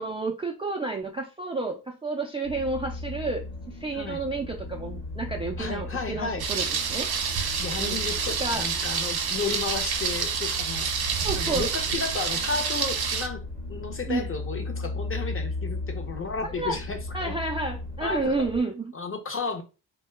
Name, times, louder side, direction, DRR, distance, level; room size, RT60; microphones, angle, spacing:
voice 1, 0.0-7.1 7.8-8.0 8.4-8.7 11.2-11.7 14.1-14.3 16.6-16.8 17.1-18.9, right 3 dB, 15° right, 0.4 m, -30 dB
sound 1, 2.4-18.6, left 2 dB, 75° left, 1.1 m, -37 dB
voice 2, 5.6-6.4 7.6-10.9 11.3-13.4 13.7-17.4 18.0-18.3 18.9-19.6, left 4 dB, 30° left, 0.7 m, -33 dB
Thunder, 6.4-13.3, right 6 dB, 55° right, 0.7 m, -28 dB
2.7 x 2.2 x 3.2 m
cardioid pair, 80°, 45 cm